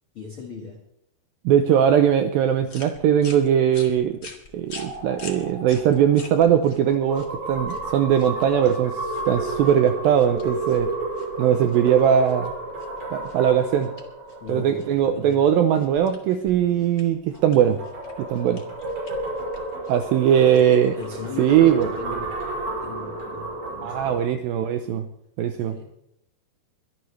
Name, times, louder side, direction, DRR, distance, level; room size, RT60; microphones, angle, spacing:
voice 1, 0.1-0.8 14.4-15.4 20.2-20.6 20.9-22.4 22.8-24.2 25.7-25.9, left 5 dB, 60° left, 0 dB, 1.4 m, -38 dB
voice 2, 1.5-4.2 4.5-10.9 11.4-12.5 13.1-13.9 14.5-17.8 18.3-18.6 19.9-20.9 21.4-21.9 23.8-25.1 25.4-25.8, right 9 dB, 85° right, 8 dB, 2.1 m, -20 dB
sound 1, 2.6-22.2, left 3 dB, 90° left, 0.7 m, -47 dB
sound 2, 4.7-15.3 17.3-24.2, right 2 dB, 45° right, 6.4 m, -32 dB
22.5 x 12.0 x 3.2 m, 0.77 s
omnidirectional pair, 4.9 m